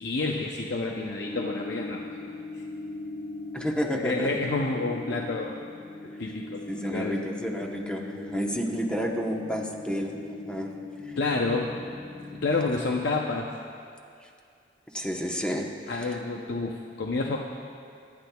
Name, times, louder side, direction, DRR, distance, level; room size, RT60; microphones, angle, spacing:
voice 1, 0.0-2.6 4.0-5.6 6.2-7.2 11.2-11.8 12.4-13.5 15.9-17.4, left 3 dB, 70° left, 0 dB, 0.6 m, -29 dB
sound 1, 1.1-12.7, left 2 dB, 20° left, 2.5 m, -40 dB
voice 2, 3.5-4.3 6.7-10.7 11.0-11.2 14.9-16.2, equal, 5° left, 1 dB, 0.9 m, -31 dB
24.0 x 9.7 x 2.3 m, 2.3 s
head